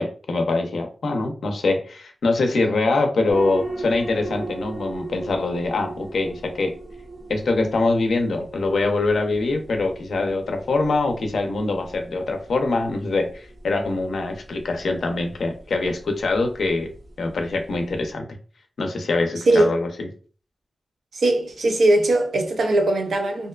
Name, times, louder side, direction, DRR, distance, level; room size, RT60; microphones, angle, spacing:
voice 1, 0.0-6.7 7.3-16.9 17.2-18.2 18.8-20.1, left 3 dB, 85° left, 0.5 m, -24 dB
sound 1, 3.3-18.1, right 2 dB, 60° right, 1.1 m, -39 dB
voice 2, 21.1-23.5, right 1 dB, 85° right, 0.5 m, -19 dB
2.6 x 2.2 x 2.3 m
wide cardioid pair, 150°, 0 cm